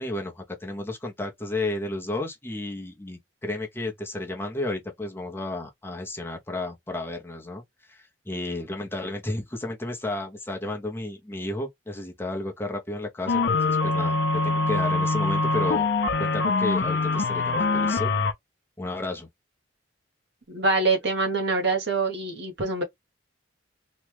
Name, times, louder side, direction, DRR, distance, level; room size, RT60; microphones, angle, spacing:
voice 1, 0.0-7.6 7.9-15.9 16.2-18.1 18.8-19.3, left 2 dB, 10° left, 0.7 m, -32 dB
sound 1, 13.3-18.3, left 3 dB, 55° left, 0.6 m, -24 dB
voice 2, 20.5-22.8, right 3 dB, 55° right, 1.0 m, -25 dB
2.9 x 2.2 x 3.3 m
head